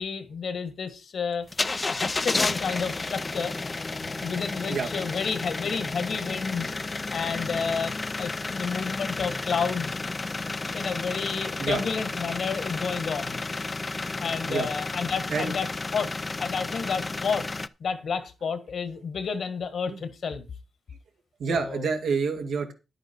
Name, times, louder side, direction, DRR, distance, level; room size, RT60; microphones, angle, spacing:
voice 1, 0.0-3.5 4.2-6.7 7.1-10.0 10.7-13.4 14.2-15.7 15.9-16.1 16.4-17.5 17.8-20.5 21.5-21.8, left 6 dB, 65° left, 1.6 m, -30 dB
sound 1, 1.5-17.7, left 3 dB, 25° left, 0.5 m, -32 dB
voice 2, 4.6-5.2 11.6-11.8 14.5-14.7 15.3-15.5 19.9-20.0 21.4-22.7, right 5 dB, 85° right, 2.3 m, -28 dB
10.5 x 9.1 x 4.4 m
cardioid pair, 110°, 0 cm